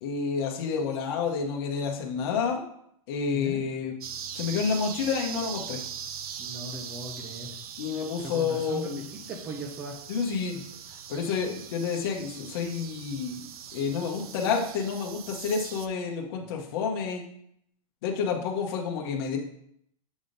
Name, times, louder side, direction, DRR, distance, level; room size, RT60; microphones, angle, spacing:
voice 1, 0.0-2.6 3.1-3.9 4.4-5.8 7.8-9.1 10.1-10.6 11.1-13.4 13.7-17.2 18.0-19.4, left 6 dB, 40° left, 0 dB, 0.9 m, -29 dB
voice 2, 3.3-3.6 6.4-7.5 8.2-10.0 16.4-16.6, right 2 dB, 10° right, 3 dB, 0.3 m, -39 dB
sound 1, 4.0-15.9, right 8 dB, 80° right, 0.6 m, -41 dB
7.2 x 3.5 x 3.9 m, 0.71 s
supercardioid pair, 175°, 19 cm